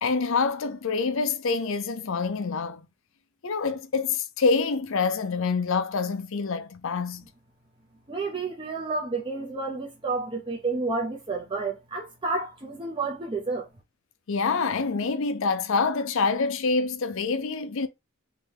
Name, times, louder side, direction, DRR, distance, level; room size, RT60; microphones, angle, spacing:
voice 1, 0.0-2.9 3.4-7.2 14.3-17.9, left 4 dB, 65° left, 0.6 m, -26 dB
voice 2, 8.1-13.7, right 3 dB, 25° right, 0.6 m, -30 dB
3.4 x 2.7 x 3.4 m
head